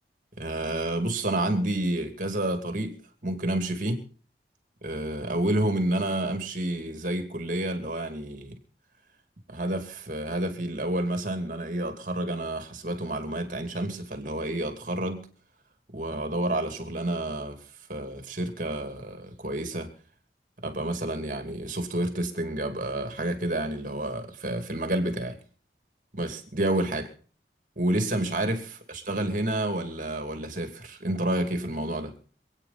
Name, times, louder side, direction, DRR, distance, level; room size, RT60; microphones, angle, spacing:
voice 1, 0.4-3.0 3.2-4.0 4.8-8.6 9.5-15.3 15.9-19.9 20.6-25.4 26.1-27.1 27.8-32.1, right 1 dB, 45° right, 6 dB, 2.6 m, -29 dB
27.0 x 9.2 x 4.2 m, 0.41 s
head